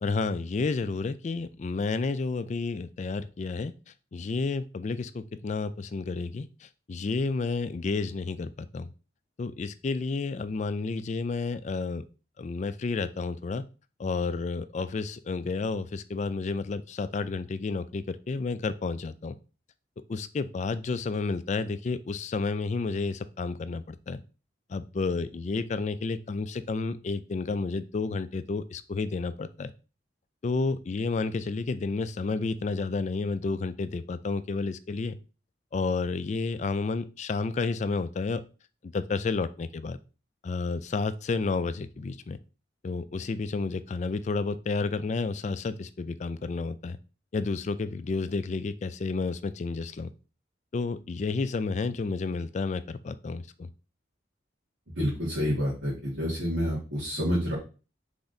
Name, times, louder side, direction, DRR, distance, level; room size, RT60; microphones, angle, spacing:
voice 1, 0.0-8.9 9.4-12.0 12.4-13.6 14.0-19.4 20.1-24.2 24.7-29.7 30.4-35.2 35.7-38.4 38.8-40.0 40.4-42.4 42.8-47.0 47.3-50.1 50.7-53.7, left 4 dB, 40° left, 13 dB, 0.3 m, -31 dB
voice 2, 54.9-57.6, equal, 80° right, -8 dB, 1.6 m, -28 dB
4.1 x 3.5 x 3.8 m, 0.34 s
head